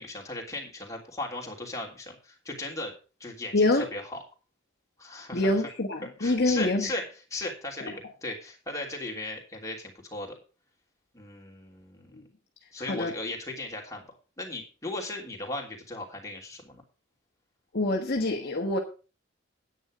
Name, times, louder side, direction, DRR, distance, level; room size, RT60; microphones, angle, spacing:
voice 1, 0.0-2.9 3.2-4.2 5.0-5.5 6.2-7.0 7.3-7.9 8.2-10.4 11.1-12.2 12.7-14.0 14.4-16.8, left 2 dB, 15° left, 3.0 m, -37 dB
voice 2, 3.5-3.8 5.3-6.9 12.1-12.2 12.8-13.1 17.7-18.8, left 2 dB, 55° left, 1.3 m, -26 dB
9.9 x 9.0 x 5.0 m
head